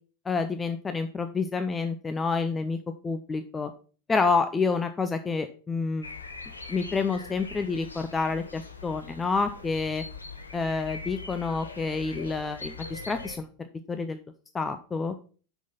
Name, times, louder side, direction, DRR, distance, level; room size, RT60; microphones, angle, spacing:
voice 1, 0.3-2.8 3.0-3.7 4.1-6.1 6.7-10.0 10.5-13.5 13.9-14.2 14.5-15.1, left 4 dB, 20° left, 8 dB, 0.6 m, -28 dB
sound 1, 6.0-13.4, left 4 dB, 85° left, 1.0 m, -42 dB
6.1 x 6.0 x 5.5 m, 0.39 s
figure-of-eight pair, 85°, 0 cm